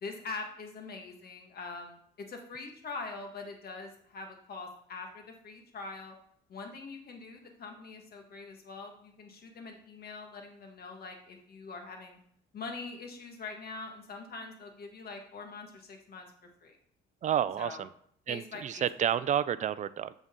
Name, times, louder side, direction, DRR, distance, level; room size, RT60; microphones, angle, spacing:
voice 1, 0.0-6.1 6.5-12.2 12.5-16.3 16.6-16.8 17.6-17.8 18.3-19.1, left 4 dB, 50° left, 4 dB, 1.5 m, -43 dB
voice 2, 17.2-17.9 18.3-20.1, right 9 dB, 40° right, 16 dB, 0.4 m, -30 dB
7.2 x 4.0 x 3.7 m, 0.65 s
supercardioid pair, 80°, 20 cm